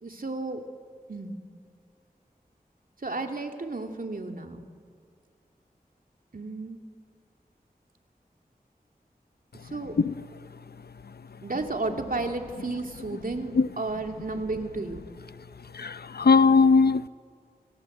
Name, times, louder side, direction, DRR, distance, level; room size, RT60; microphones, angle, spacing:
voice 1, 0.0-0.6 1.1-1.4 3.0-4.6 6.3-6.8 9.6-9.9 11.4-15.0, right 3 dB, 60° right, 4 dB, 2.7 m, -32 dB
voice 2, 15.7-17.1, left 4 dB, 80° left, 14 dB, 0.7 m, -20 dB
29.0 x 23.5 x 8.1 m, 2.1 s
wide cardioid pair, 50°, 16 cm